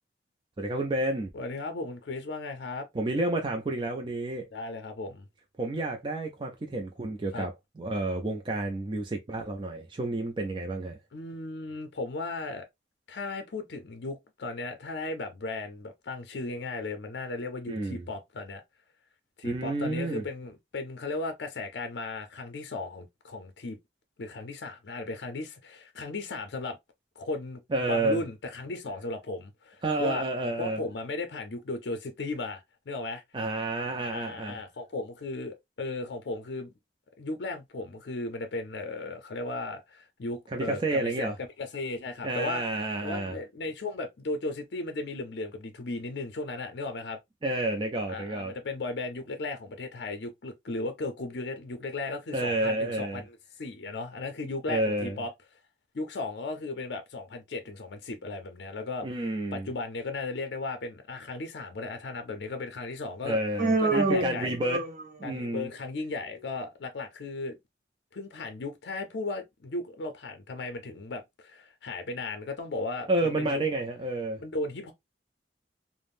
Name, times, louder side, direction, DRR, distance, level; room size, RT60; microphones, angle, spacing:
voice 1, 0.6-1.3 2.9-4.4 5.6-7.5 7.8-11.0 17.7-18.1 19.4-20.2 27.7-28.2 29.8-30.8 33.3-34.6 40.5-41.4 42.2-43.3 47.4-48.5 52.3-53.2 54.7-55.2 59.0-59.7 63.2-64.8 65.2-65.7 73.1-74.4, right 2 dB, 25° right, 0.3 m, -30 dB
voice 2, 1.3-2.9 4.5-5.3 7.3-7.5 11.1-12.7 13.1-18.6 19.4-23.8 24.2-26.8 27.2-30.3 30.6-33.2 34.0-36.7 37.2-42.6 43.0-47.2 48.1-55.3 55.9-59.1 59.5-63.4 63.8-64.5 65.2-67.6 68.1-73.6 74.4-74.9, left 3 dB, 65° left, 0.5 m, -36 dB
Human voice, 63.6-65.3, right 2 dB, 45° right, 0.7 m, -27 dB
3.4 x 2.0 x 2.4 m
head